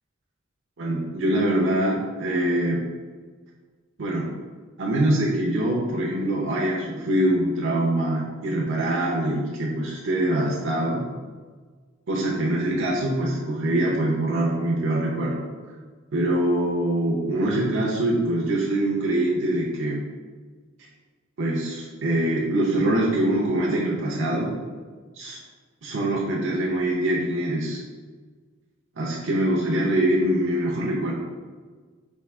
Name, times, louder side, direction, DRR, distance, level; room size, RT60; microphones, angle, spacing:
voice 1, 0.8-2.8 4.0-4.3 4.8-11.0 12.1-15.4 16.1-20.0 21.4-24.5 25.1-25.4 25.8-27.8 29.0-31.1, right 1 dB, 65° right, -4 dB, 0.6 m, -24 dB
4.5 x 2.8 x 3.4 m, 1.5 s
head